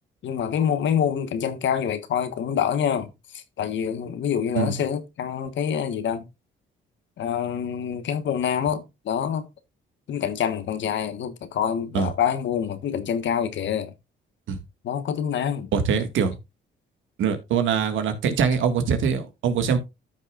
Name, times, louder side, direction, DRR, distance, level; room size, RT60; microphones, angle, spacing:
voice 1, 0.2-6.2 7.2-9.5 10.1-13.9 14.8-15.7, left 8 dB, 70° left, 1.3 m, -26 dB
voice 2, 15.7-16.4 17.2-19.8, right 6 dB, 75° right, 1.8 m, -23 dB
14.0 x 6.1 x 2.4 m
cardioid pair, 90°, 20 cm